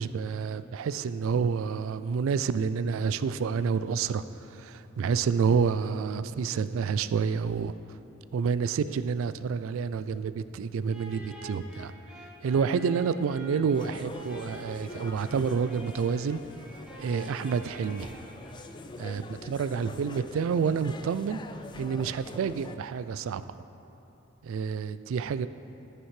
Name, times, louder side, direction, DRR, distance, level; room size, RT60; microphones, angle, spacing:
voice 1, 0.0-4.2 4.6-7.7 8.3-11.9 12.4-16.4 17.0-18.2 19.0-21.4 21.8-23.6 24.4-25.5, right 6 dB, 65° right, 13 dB, 0.3 m, -28 dB
sound 1, 10.9-19.0, right 1 dB, 5° right, 1.1 m, -47 dB
sound 2, 13.7-22.8, left 2 dB, 20° left, 0.3 m, -45 dB
14.0 x 9.1 x 3.2 m, 2.9 s
head